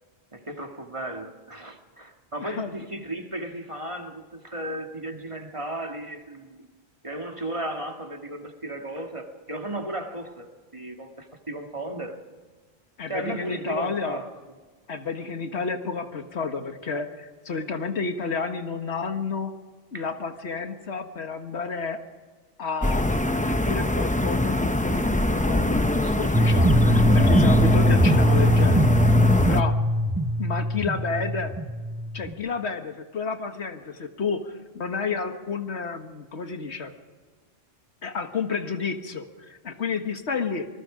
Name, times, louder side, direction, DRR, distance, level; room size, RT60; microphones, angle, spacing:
voice 1, 0.3-6.7 7.0-10.5 10.7-12.2 13.1-14.3 19.9-20.1, right 1 dB, 30° right, 3 dB, 1.9 m, -35 dB
voice 2, 2.4-2.7 13.0-14.2 14.9-19.5 19.9-22.0 22.6-28.9 29.5-29.8 30.4-31.5 32.1-36.9 38.0-40.7, left 4 dB, 90° left, 7 dB, 1.8 m, -31 dB
sound 1, 22.8-29.6, left 1 dB, 10° left, 0.7 m, -23 dB
sound 2, 26.3-32.3, equal, 15° right, 1.0 m, -21 dB
26.5 x 20.0 x 5.0 m, 1.4 s
omnidirectional pair, 1.1 m